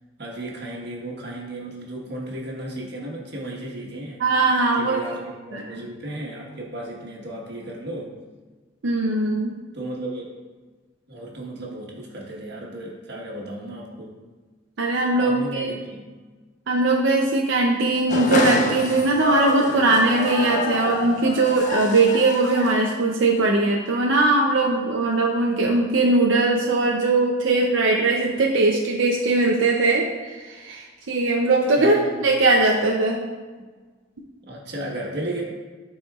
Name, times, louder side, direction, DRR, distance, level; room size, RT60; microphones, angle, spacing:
voice 1, 0.2-4.2 4.8-8.1 9.7-10.3 11.1-14.1 15.2-16.0 31.7-32.2 34.5-35.4, right 1 dB, 60° right, -2 dB, 1.3 m, -34 dB
voice 2, 4.2-5.0 5.5-5.8 8.8-9.6 14.8-15.7 16.7-32.0 32.2-33.2, right 2 dB, 90° right, -1 dB, 0.6 m, -20 dB
sound 1, 18.1-23.0, left 2 dB, 40° left, 0.5 m, -27 dB
11.5 x 4.3 x 2.4 m, 1.4 s
head